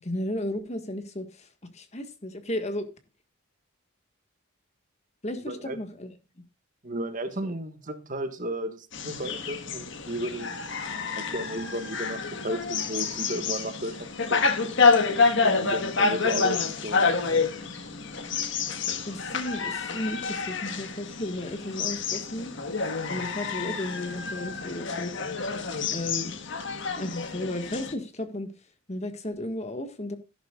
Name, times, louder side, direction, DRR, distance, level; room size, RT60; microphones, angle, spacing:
voice 1, 0.0-1.5 1.7-2.9 5.2-6.1 7.4-7.5 15.4-15.7 19.1-22.5 23.1-25.1 25.9-26.3 27.0-28.5 28.9-30.2, left 1 dB, 30° left, 1.6 m, -34 dB
voice 2, 5.4-5.8 6.8-10.5 11.2-14.7 15.6-17.5, right 1 dB, 40° right, 1.5 m, -34 dB
sound 1, 8.9-27.9, left 4 dB, 60° left, 1.4 m, -28 dB
13.5 x 11.5 x 2.4 m
head